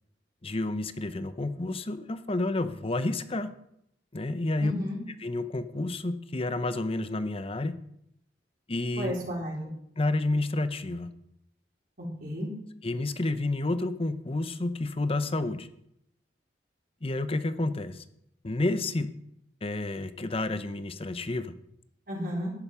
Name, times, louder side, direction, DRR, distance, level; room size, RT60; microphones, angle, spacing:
voice 1, 0.4-3.5 4.1-4.7 5.2-7.8 8.7-9.1 10.0-11.1 12.8-15.7 17.0-18.0 18.4-19.1 19.6-21.5, left 2 dB, 30° left, 11 dB, 0.8 m, -30 dB
voice 2, 4.6-5.0 9.0-9.7 12.0-12.5 22.1-22.5, equal, 55° right, -4 dB, 4.0 m, -33 dB
11.0 x 10.5 x 5.6 m, 0.75 s
head